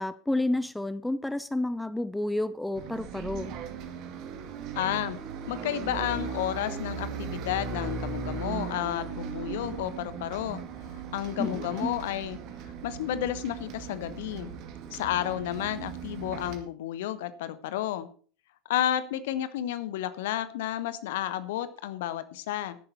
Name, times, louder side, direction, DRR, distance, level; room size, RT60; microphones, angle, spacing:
voice 1, 0.0-3.5 11.4-11.9, left 1 dB, 5° left, 0.7 m, -30 dB
Bus, 2.7-16.6, right 7 dB, 45° right, 2.2 m, -38 dB
voice 2, 4.7-5.2 5.5-10.6 10.9-12.4 12.8-14.5 14.9-18.1 18.7-22.8, left 12 dB, 60° left, 1.2 m, -31 dB
14.0 x 11.0 x 4.3 m
figure-of-eight pair, 80°, 0 cm